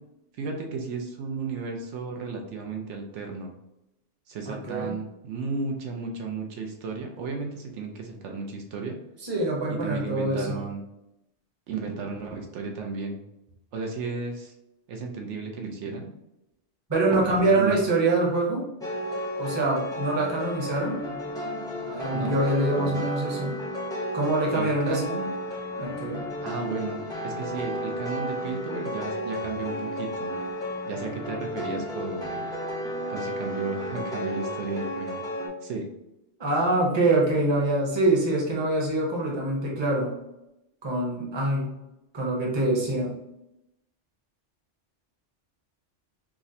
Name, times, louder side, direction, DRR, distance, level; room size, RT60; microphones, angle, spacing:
voice 1, 0.4-3.5 4.3-9.0 9.7-10.8 11.7-13.2 13.7-14.5 14.9-16.1 17.1-17.8 22.1-22.3 22.8-23.0 24.5-25.3 26.4-30.3 30.9-32.4 33.1-35.2 35.6-35.9, right 4 dB, 75° right, 2 dB, 0.9 m, -34 dB
voice 2, 4.5-4.9 9.2-10.6 16.9-18.9 19.4-21.2 21.8-23.6 24.1-25.0 25.8-26.3 36.4-40.1 40.8-41.7 42.1-43.1, right 2 dB, 25° right, -3 dB, 0.8 m, -25 dB
sound 1, 18.8-35.5, equal, 5° left, 0.5 m, -33 dB
4.7 x 2.1 x 2.6 m, 0.90 s
omnidirectional pair, 1.2 m